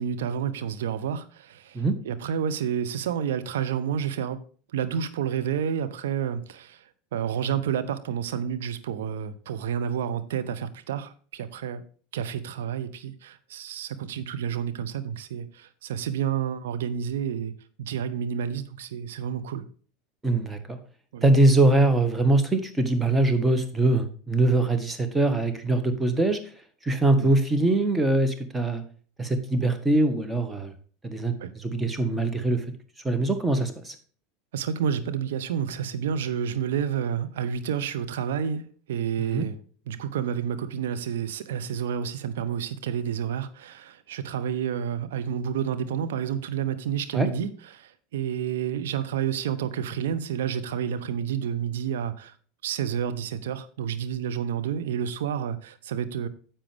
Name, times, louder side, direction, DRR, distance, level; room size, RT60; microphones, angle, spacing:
voice 1, 0.0-4.4 4.7-11.8 12.1-17.5 17.8-19.6 21.1-21.2 27.2-27.3 31.4-31.5 34.5-39.6 39.9-52.4 52.6-56.3, right 8 dB, 70° right, 0.8 m, -30 dB
voice 2, 20.2-20.8 21.2-26.4 26.8-28.8 29.2-30.7 31.0-31.3 31.6-32.6 33.0-33.9 39.2-39.5 47.1-47.3, right 2 dB, 10° right, 1.6 m, -22 dB
9.9 x 7.4 x 3.5 m
hypercardioid pair, 80°, 0 cm